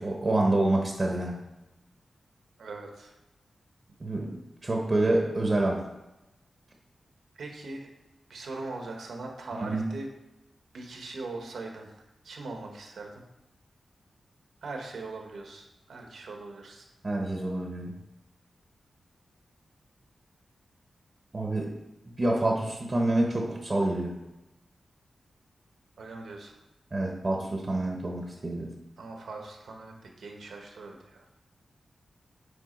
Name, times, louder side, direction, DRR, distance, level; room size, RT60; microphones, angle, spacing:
voice 1, 0.0-1.4 4.0-5.8 9.6-9.9 17.0-18.0 21.3-21.7 22.2-24.2 26.9-28.8, right 2 dB, 30° right, 1 dB, 0.9 m, -27 dB
voice 2, 2.6-3.1 7.3-7.9 8.3-10.1 10.7-11.9 12.2-13.2 14.6-16.8 26.0-26.5 29.0-31.2, right 3 dB, 85° right, 2 dB, 1.3 m, -40 dB
8.5 x 3.6 x 5.2 m, 0.97 s
wide cardioid pair, 140°, 0 cm